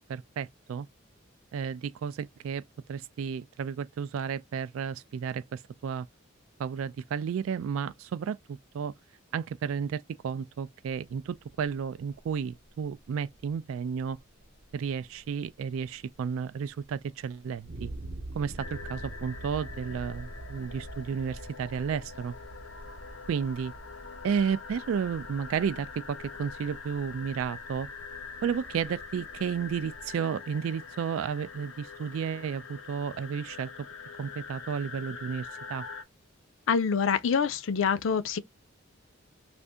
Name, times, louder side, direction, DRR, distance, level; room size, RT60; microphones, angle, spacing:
voice 1, 0.1-0.9 1.5-2.6 2.9-6.1 6.6-8.9 9.3-14.2 14.7-17.9 18.3-22.3 23.3-23.7 24.2-27.9 28.4-33.7 34.2-35.9, right 7 dB, 85° right, 0.3 m, -32 dB
sound 1, 11.2-30.1, right 1 dB, 55° right, 0.7 m, -46 dB
sound 2, 18.6-36.0, left 5 dB, 85° left, 0.9 m, -44 dB
voice 2, 36.7-38.4, left 6 dB, 70° left, 0.5 m, -26 dB
2.6 x 2.6 x 3.3 m
head